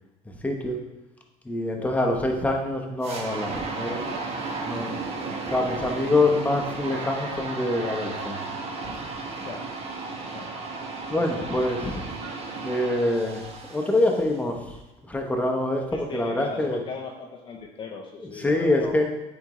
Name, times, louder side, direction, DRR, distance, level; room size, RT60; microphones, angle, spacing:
voice 1, 0.4-0.8 1.4-4.0 4.6-5.1 5.5-8.4 11.1-12.0 12.6-14.7 15.1-16.8 18.4-19.0, left 2 dB, 10° left, 1 dB, 0.9 m, -25 dB
sound 1, 3.0-14.3, right 3 dB, 45° right, 1.1 m, -34 dB
voice 2, 15.9-19.0, left 5 dB, 30° left, 0 dB, 0.6 m, -39 dB
8.7 x 3.5 x 3.1 m, 1.0 s
cardioid pair, 115°, 15 cm